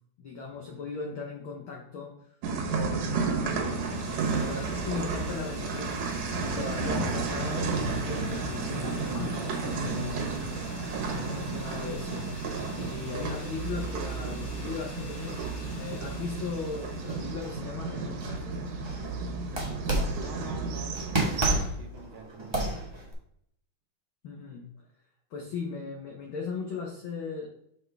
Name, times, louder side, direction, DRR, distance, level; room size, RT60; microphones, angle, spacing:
voice 1, 0.2-2.4 2.7-6.1 6.4-10.2 10.9-12.3 12.7-15.4 15.7-18.6 24.2-24.7 25.3-27.5, left 5 dB, 75° left, 0 dB, 1.1 m, -38 dB
sound 1, 2.4-21.5, right 4 dB, 85° right, 2.6 m, -32 dB
sound 2, 3.1-17.6, left 2 dB, 60° left, 0.8 m, -47 dB
sound 3, 17.0-19.1 19.5-20.5 20.9-23.1, right 1 dB, 25° right, 0.5 m, -32 dB
voice 2, 19.5-22.9, right 4 dB, 65° right, 5 dB, 1.8 m, -46 dB
6.4 x 6.4 x 3.4 m, 0.72 s
omnidirectional pair, 3.5 m